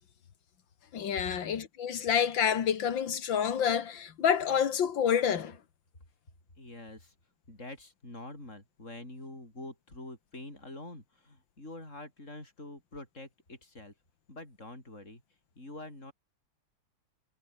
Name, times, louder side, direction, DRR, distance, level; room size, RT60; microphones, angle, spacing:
voice 1, 0.9-5.6, left 8 dB, 70° left, 2.3 m, -28 dB
voice 2, 6.6-7.1 7.5-13.9 14.3-15.2 15.6-16.1, left 1 dB, 35° left, 8.5 m, -46 dB
omnidirectional pair, 2.1 m